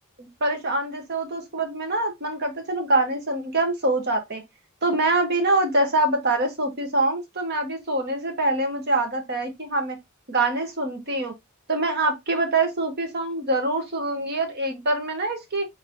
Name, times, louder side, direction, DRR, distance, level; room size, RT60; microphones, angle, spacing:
voice 1, 0.2-4.4 4.8-10.0 10.3-11.3 11.7-15.6, right 2 dB, 50° right, 1.4 m, -24 dB
4.2 x 4.1 x 3.0 m
head